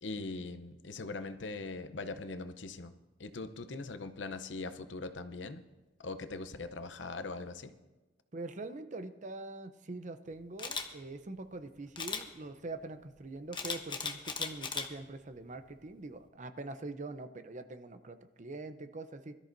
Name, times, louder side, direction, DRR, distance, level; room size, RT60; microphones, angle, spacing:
voice 1, 0.0-2.9 3.2-5.6 6.0-7.7, left 3 dB, 75° left, 10 dB, 0.8 m, -41 dB
voice 2, 8.3-19.4, right 2 dB, 40° right, 9 dB, 0.7 m, -44 dB
Camera, 10.6-10.8 12.0-12.2 13.5-14.9 15.4-15.6, left 5 dB, 25° left, 0.9 m, -36 dB
22.0 x 13.0 x 2.7 m, 1.1 s
head